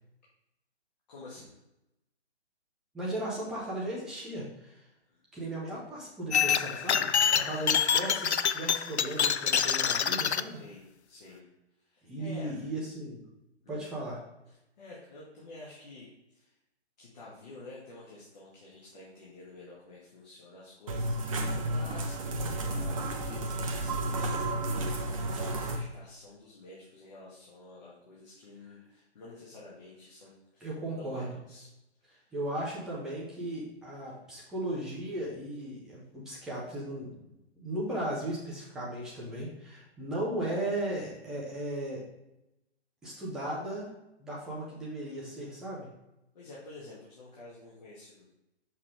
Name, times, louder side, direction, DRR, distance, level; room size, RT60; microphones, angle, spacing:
voice 1, 1.1-1.5 5.1-5.2 7.3-7.7 10.5-11.5 11.8-12.7 13.6-13.9 14.5-16.5 17.0-31.7 32.1-32.3 46.3-48.2, left 2 dB, 40° left, -6 dB, 1.7 m, -50 dB
voice 2, 2.9-4.8 5.3-7.1 7.5-10.6 12.0-13.2 13.7-14.2 30.6-31.4 32.3-37.2 37.6-42.0 43.0-43.9 44.2-45.9, right 1 dB, ahead, -7 dB, 0.6 m, -36 dB
sound 1, 6.3-10.4, left 7 dB, 75° left, 0.5 m, -26 dB
sound 2, 20.9-25.8, right 1 dB, 30° right, 0.8 m, -32 dB
6.4 x 5.8 x 3.2 m, 0.90 s
figure-of-eight pair, 135°, 33 cm